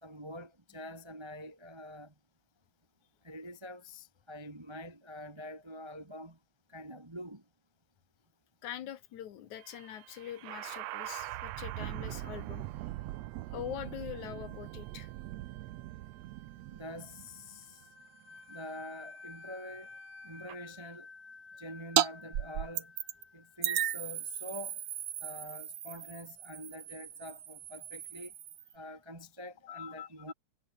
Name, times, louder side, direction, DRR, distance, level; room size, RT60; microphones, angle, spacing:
voice 1, 0.0-2.1 3.2-6.4 6.7-7.4 16.7-17.8 18.5-19.9 20.2-21.1 21.6-22.9 23.3-24.8 25.2-28.3 28.7-30.3, left 1 dB, 15° right, 0.9 m, -46 dB
voice 2, 8.6-12.7 13.5-15.1 29.6-30.3, left 11 dB, 75° left, 2.8 m, -43 dB
sound 1, 9.6-20.5, right 16 dB, 75° right, 1.7 m, -43 dB
sound 2, 17.8-24.2, left 4 dB, 25° left, 1.8 m, -52 dB
sound 3, 22.0-22.1 22.3-23.2 23.6-28.7, right 10 dB, 55° right, 1.9 m, -35 dB
omnidirectional pair, 3.4 m